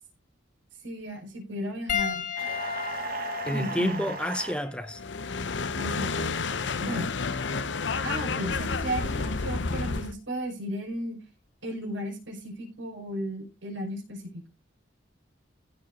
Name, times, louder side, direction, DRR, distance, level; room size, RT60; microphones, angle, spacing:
voice 1, 0.8-2.3 3.4-4.2 5.7-6.3 6.8-7.2 8.0-11.2 11.6-14.5, equal, 80° right, 5.9 m, -35 dB
Piano, 1.9-6.6 7.5-7.7 9.6-9.7, left 8 dB, 40° left, 1.5 m, -35 dB
sound 1, 2.4-4.6, right 4 dB, 50° right, 1.7 m, -36 dB
voice 2, 3.4-5.0, equal, 5° left, 0.7 m, -29 dB
sound 2, 4.9-10.1, left 4 dB, 70° left, 0.8 m, -30 dB
16.0 x 5.3 x 4.2 m
head